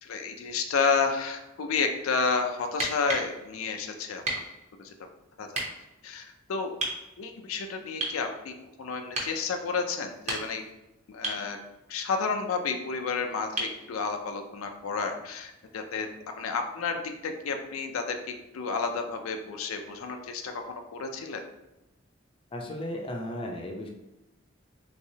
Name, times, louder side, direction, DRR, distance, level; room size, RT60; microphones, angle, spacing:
voice 1, 0.0-4.2 4.8-4.9 5.4-5.5 6.0-6.7 7.2-8.5 8.8-10.6 11.1-11.6 11.9-16.1 16.4-20.6 20.9-21.4, left 5 dB, 90° left, 5 dB, 0.4 m, -31 dB
sound 1, 2.7-3.3 4.2-4.5 5.5-5.7 6.8-7.0 8.0-8.2 9.1-9.4 10.1-10.7 11.2-11.5 13.6-13.8 15.6-15.7, right 2 dB, 35° right, 0.7 m, -32 dB
voice 2, 22.5-23.9, left 1 dB, 25° left, 1 dB, 0.4 m, -35 dB
3.5 x 3.0 x 2.7 m, 0.96 s
head